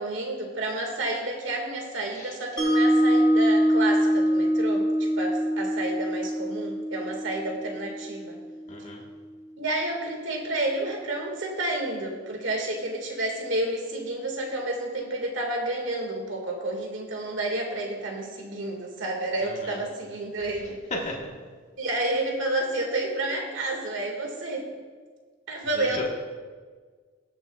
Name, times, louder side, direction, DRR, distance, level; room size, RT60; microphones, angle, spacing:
voice 1, 0.0-8.4 9.6-20.8 21.8-24.7 25.5-26.1, right 2 dB, 70° right, 1 dB, 1.9 m, -30 dB
Mallet percussion, 2.6-8.7, equal, 20° left, 1.6 m, -24 dB
voice 2, 8.7-9.0 19.4-19.8 20.6-21.3 25.7-26.1, left 1 dB, 35° left, -2 dB, 1.3 m, -35 dB
21.5 x 7.2 x 2.3 m, 1.5 s
head